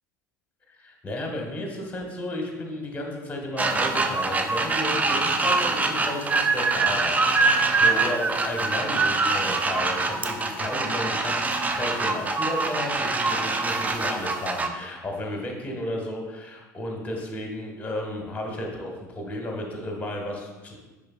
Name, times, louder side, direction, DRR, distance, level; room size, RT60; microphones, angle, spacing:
voice 1, 0.7-20.8, left 1 dB, 15° left, 1 dB, 1.4 m, -33 dB
sound 1, 3.6-14.7, right 3 dB, 15° right, 0.5 m, -24 dB
10.5 x 3.9 x 2.4 m, 1.2 s
figure-of-eight pair, 75°, 10 cm